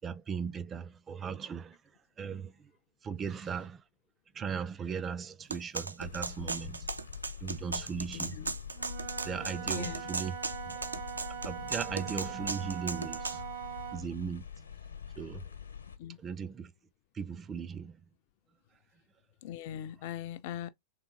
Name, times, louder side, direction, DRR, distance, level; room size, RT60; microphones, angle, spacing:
voice 1, 0.0-1.8 2.2-2.7 3.0-3.8 4.3-6.9 7.4-8.4 9.2-10.4 10.7-11.0 11.4-13.5 13.9-14.4 15.2-15.4 16.2-16.7 17.1-18.0, right 6 dB, 20° right, 0.4 m, -38 dB
sound 1, 5.5-13.4, right 3 dB, 80° right, 0.5 m, -37 dB
sound 2, 6.0-16.0, left 7 dB, 75° left, 0.8 m, -45 dB
voice 2, 8.1-8.5 9.7-10.0 16.0-16.2 19.4-20.7, left 11 dB, 50° left, 0.4 m, -40 dB
Wind instrument woodwind instrument, 8.7-14.1, right 9 dB, 60° right, 1.1 m, -42 dB
3.7 x 3.6 x 2.9 m
figure-of-eight pair, 95°, 0 cm